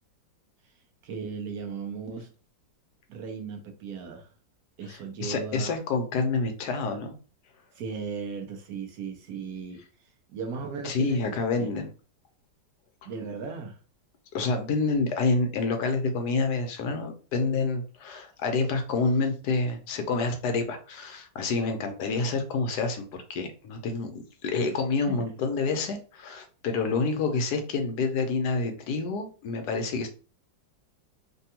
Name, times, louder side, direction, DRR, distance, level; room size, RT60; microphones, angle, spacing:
voice 1, 1.0-2.3 3.1-4.3 4.8-5.7 7.7-11.7 13.0-13.8 25.1-25.2 26.8-27.1, right 5 dB, 70° right, 0.9 m, -37 dB
voice 2, 4.9-7.1 10.8-11.9 13.0-13.1 14.3-30.1, left 3 dB, 70° left, 1.1 m, -28 dB
3.3 x 2.2 x 2.8 m
omnidirectional pair, 2.0 m